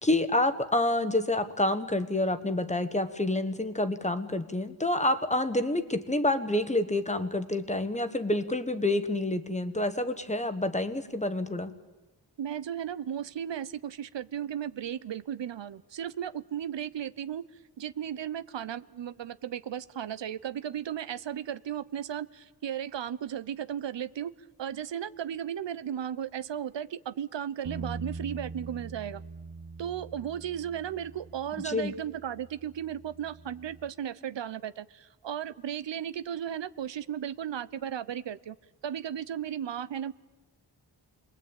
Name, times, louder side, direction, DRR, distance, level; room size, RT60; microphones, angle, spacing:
voice 1, 0.0-11.7 31.6-31.9, left 1 dB, 15° left, 10 dB, 1.4 m, -28 dB
voice 2, 12.4-17.4 17.8-24.3 24.6-29.2 29.8-38.6 38.8-40.1, right 9 dB, 85° right, 16 dB, 0.8 m, -35 dB
Bass guitar, 27.6-33.9, right 4 dB, 40° right, 1.5 m, -43 dB
29.0 x 21.5 x 9.0 m, 1.1 s
wide cardioid pair, 150°, 43 cm